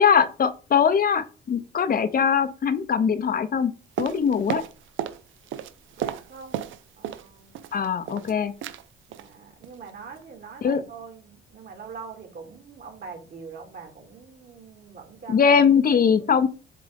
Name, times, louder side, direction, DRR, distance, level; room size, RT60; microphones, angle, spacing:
voice 1, 0.0-3.7 4.0-4.6 7.7-8.5 10.6-10.8 15.3-16.5, left 7 dB, 45° left, 11 dB, 0.7 m, -21 dB
sound 1, 4.0-5.2 5.5-7.3 7.5-8.3 8.6-8.8 9.1-9.3 9.6-9.9 10.2-10.3, right 11 dB, 80° right, 0.6 m, -33 dB
voice 2, 6.0-7.6 9.1-15.6 15.9-16.3, right 5 dB, 55° right, 3 dB, 2.3 m, -43 dB
7.6 x 3.6 x 3.5 m, 0.34 s
cardioid pair, 90°, 20 cm